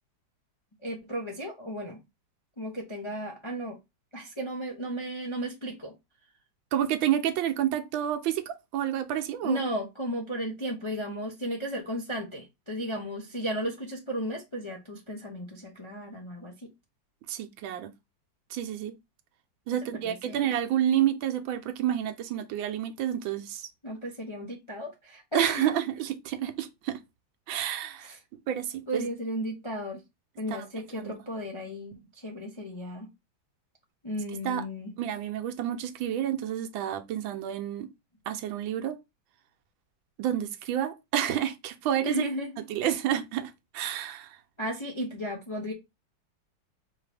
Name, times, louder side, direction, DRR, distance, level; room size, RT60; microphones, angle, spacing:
voice 1, 0.8-2.0 2.6-3.8 4.1-5.9 9.4-16.5 20.0-20.4 23.8-25.7 28.0-28.2 28.9-30.0 30.4-33.1 34.0-34.9 42.0-42.5 44.6-45.7, equal, 30° left, 0.5 m, -34 dB
voice 2, 6.7-9.6 17.3-17.9 18.5-18.9 19.7-23.7 25.3-27.0 27.5-28.1 28.5-29.1 30.5-30.7 31.0-31.1 34.4-34.6 35.0-37.9 38.3-39.0 40.2-42.3 42.7-44.4, right 10 dB, 80° right, 1.4 m, -29 dB
4.8 x 3.0 x 3.3 m
omnidirectional pair, 2.1 m